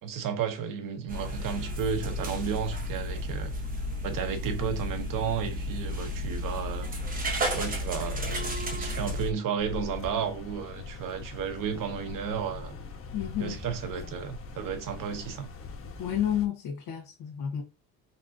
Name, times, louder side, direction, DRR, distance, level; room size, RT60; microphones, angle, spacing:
voice 1, 0.0-3.5 4.0-6.9 7.5-12.8 13.4-15.5, right 7 dB, 50° right, 0.9 m, -33 dB
sound 1, 1.1-9.3, equal, 20° right, 1.0 m, -32 dB
sound 2, 9.6-16.5, left 5 dB, 30° left, 1.0 m, -42 dB
voice 2, 13.1-13.6 16.0-17.6, left 10 dB, 65° left, 1.4 m, -30 dB
4.1 x 3.4 x 2.7 m
cardioid pair, 120°, 41 cm